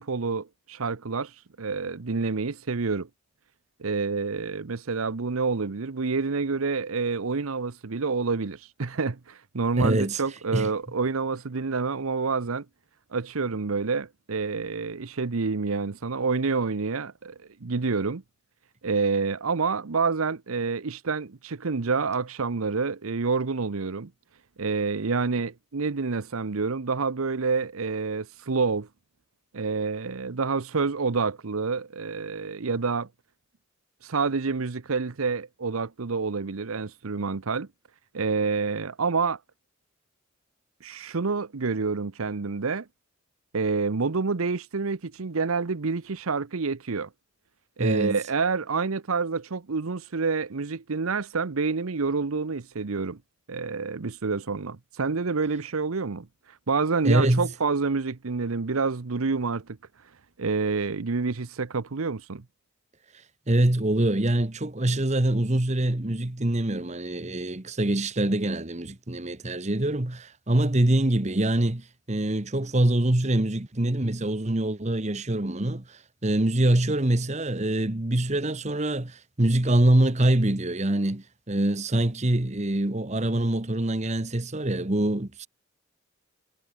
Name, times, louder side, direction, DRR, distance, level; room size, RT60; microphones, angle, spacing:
voice 1, 0.0-1.3 1.6-3.1 3.8-12.6 13.1-17.3 17.6-18.2 18.8-24.1 24.6-28.9 29.5-33.1 34.0-37.7 38.1-39.4 40.8-42.9 43.5-47.1 47.8-53.2 53.5-56.3 56.7-59.8 60.4-62.4, right 4 dB, 85° right, 0.8 m, -28 dB
voice 2, 9.8-10.2 10.5-10.7 47.8-48.2 57.0-57.5 63.5-85.5, right 1 dB, 35° right, 1.3 m, -24 dB
head